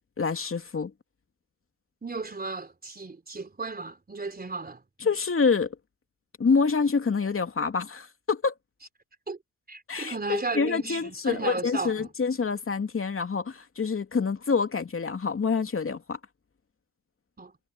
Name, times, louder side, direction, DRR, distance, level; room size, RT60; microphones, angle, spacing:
voice 1, 0.2-0.9 5.0-5.7 6.4-8.5 9.9-16.2, left 5 dB, 40° left, 3.0 m, -27 dB
voice 2, 2.0-4.8 9.3-9.4 9.7-12.1 17.4-17.5, right 3 dB, 30° right, 3.9 m, -34 dB
supercardioid pair, 55°, 33 cm